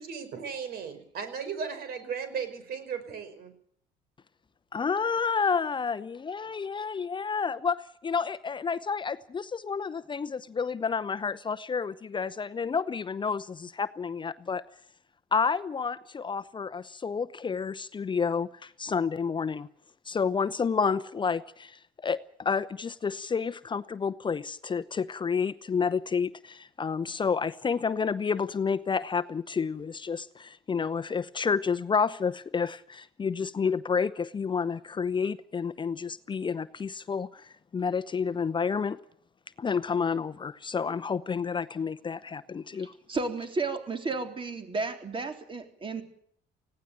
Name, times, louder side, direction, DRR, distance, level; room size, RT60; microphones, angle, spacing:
voice 1, 0.0-3.5, right 6 dB, 65° right, 10 dB, 5.2 m, -36 dB
voice 2, 4.7-14.6 15.3-19.7 20.1-39.0 39.6-42.9, left 5 dB, 30° left, 13 dB, 0.8 m, -30 dB
voice 3, 42.8-46.0, right 3 dB, 30° right, 6 dB, 3.6 m, -33 dB
19.5 x 17.0 x 9.1 m, 0.65 s
cardioid pair, 110°, 17 cm